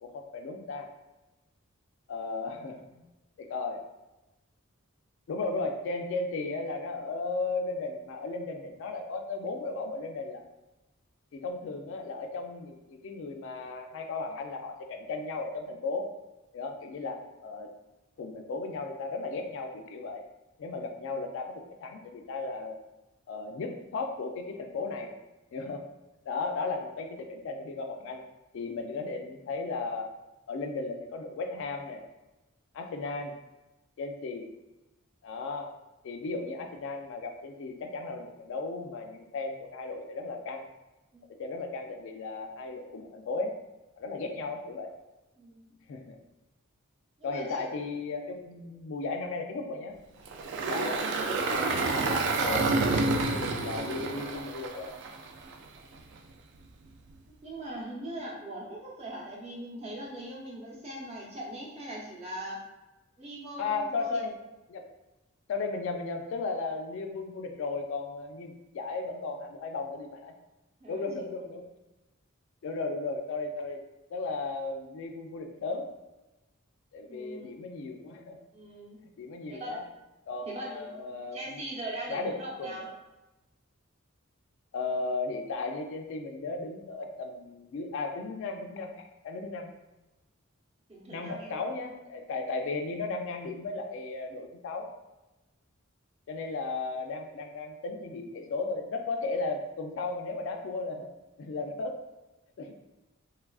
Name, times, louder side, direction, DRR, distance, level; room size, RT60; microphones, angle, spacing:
voice 1, 0.0-0.9 2.1-3.0 3.4-3.8 5.3-10.4 11.3-16.1 16.5-17.7 18.2-20.2 20.6-22.8 23.3-25.1 25.5-25.8 26.3-28.2 28.5-30.1 30.5-32.0 32.7-33.3 34.0-34.5 35.2-35.7 36.0-40.6 41.4-43.5 44.0-44.9 45.9-46.2 47.2-49.9 50.5-52.7 53.3-54.9 63.6-64.4 64.7-64.8 65.5-70.3 70.9-71.6 72.6-73.8 74.1-75.8 76.9-78.4 79.0-79.8 80.3-81.6 82.1-82.3 82.6-82.9 84.7-89.7 91.1-94.9 96.3-101.1 101.4-102.0 102.6-102.7, left 3 dB, 65° left, 4 dB, 0.3 m, -35 dB
voice 2, 45.4-45.7 47.2-47.7 57.3-62.6 63.2-64.2 70.8-71.0 77.0-77.6 78.5-79.0 79.5-79.8 80.5-80.9 81.3-82.9 90.9-91.7, right 1 dB, 30° right, -4 dB, 0.7 m, -41 dB
Engine, 50.3-55.5, right 3 dB, 60° right, 0.3 m, -29 dB
3.2 x 2.4 x 2.3 m, 1.0 s
head